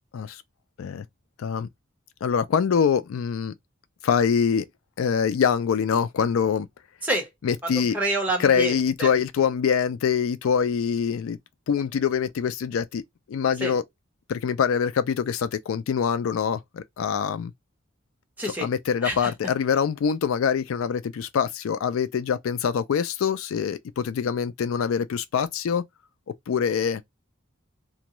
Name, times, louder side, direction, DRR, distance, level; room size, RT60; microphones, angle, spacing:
voice 1, 2.2-3.5 4.0-4.7 5.0-6.7 7.4-8.0 8.4-11.4 11.7-13.0 13.3-13.8 14.3-17.5 18.4-25.8 26.5-27.0, left 7 dB, 85° left, 0.4 m, -24 dB
voice 2, 7.6-8.7 9.0-9.1 13.6-13.7 18.4-18.7 19.0-19.3, right 1 dB, 10° right, 1.0 m, -27 dB
2.5 x 2.2 x 3.0 m
head